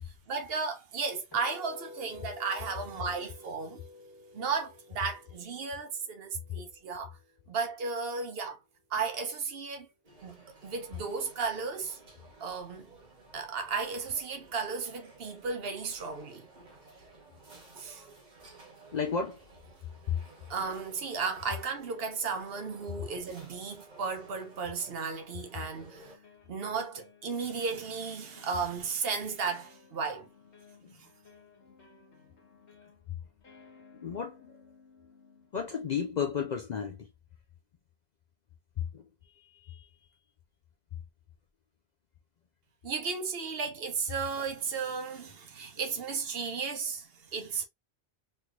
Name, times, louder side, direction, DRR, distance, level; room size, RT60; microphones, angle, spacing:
voice 1, 0.3-3.8 4.3-7.2 7.5-8.6 8.9-9.9 10.2-10.4 10.6-12.0 12.4-12.9 13.3-16.4 17.8-18.0 20.5-26.0 26.5-30.3 42.8-47.6, right 5 dB, 60° right, 0.9 m, -34 dB
sound 1, 1.3-7.4, left 2 dB, 20° left, 1.2 m, -51 dB
sound 2, 10.0-26.2, right 3 dB, 40° right, 1.2 m, -55 dB
voice 2, 18.9-19.4 20.1-20.2 30.8-30.9 34.0-34.5 35.5-37.1 38.9-39.0 39.6-39.9, left 6 dB, 55° left, 0.5 m, -33 dB
sound 3, 24.2-25.4 25.9-35.5, left 5 dB, 80° left, 1.5 m, -59 dB
3.2 x 3.0 x 2.4 m
omnidirectional pair, 1.2 m